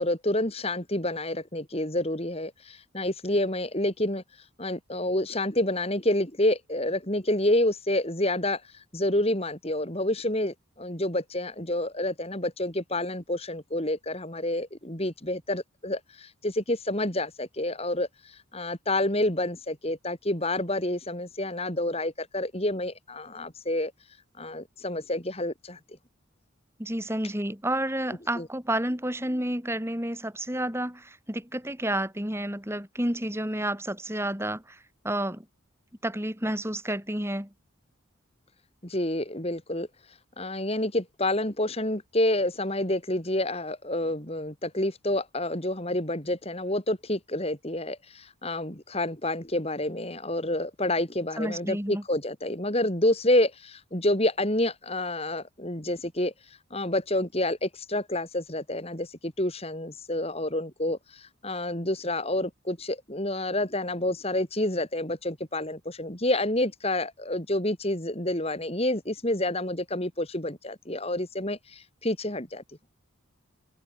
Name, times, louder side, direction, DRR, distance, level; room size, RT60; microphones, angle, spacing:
voice 1, 0.0-4.2 4.6-23.9 24.4-25.8 28.4-28.5 38.8-39.9 40.4-72.6, left 1 dB, 30° left, 3.3 m, -28 dB
voice 2, 26.8-35.5 36.0-37.5 51.4-52.0, right 1 dB, 10° right, 5.4 m, -30 dB
head